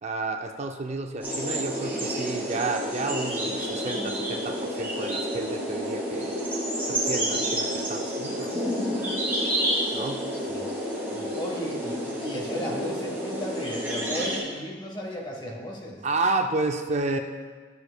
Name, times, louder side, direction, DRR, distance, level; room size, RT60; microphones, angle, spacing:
voice 1, 0.0-6.3 6.9-8.5 9.9-10.2 16.0-17.2, right 3 dB, 40° right, 5 dB, 0.4 m, -30 dB
sound 1, 1.2-14.4, equal, 10° right, 1.8 m, -29 dB
voice 2, 11.0-16.0, equal, 25° left, -1 dB, 1.2 m, -35 dB
11.5 x 6.8 x 2.2 m, 1.5 s
head